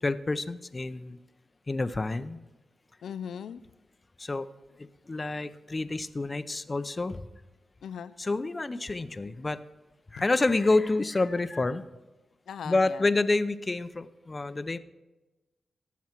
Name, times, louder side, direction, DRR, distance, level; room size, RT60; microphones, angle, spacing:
voice 1, 0.0-1.2 1.7-2.4 4.2-4.5 4.8-7.3 8.2-9.6 10.1-11.8 12.6-14.8, left 2 dB, 30° left, 12 dB, 0.7 m, -28 dB
voice 2, 3.0-3.6 7.8-8.1 12.5-13.0, left 8 dB, 85° left, 13 dB, 0.4 m, -38 dB
17.0 x 7.1 x 4.5 m, 1.1 s
cardioid pair, 65°, 0 cm